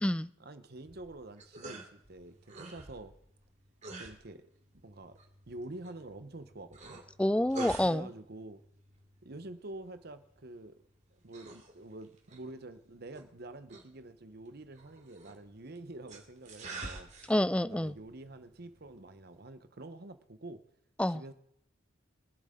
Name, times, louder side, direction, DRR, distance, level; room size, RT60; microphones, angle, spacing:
voice 1, 0.4-3.1 4.0-4.4 4.8-5.1 5.5-7.0 7.8-8.6 9.2-10.8 11.2-17.1 17.6-20.6 21.1-21.3, right 2 dB, 55° right, 10 dB, 1.0 m, -47 dB
sound 1, 0.8-19.5, right 2 dB, 40° right, 2.6 m, -50 dB
voice 2, 7.2-8.1 17.3-18.0 21.0-21.2, left 1 dB, 5° left, 16 dB, 0.4 m, -28 dB
24.0 x 8.0 x 3.8 m, 0.72 s
head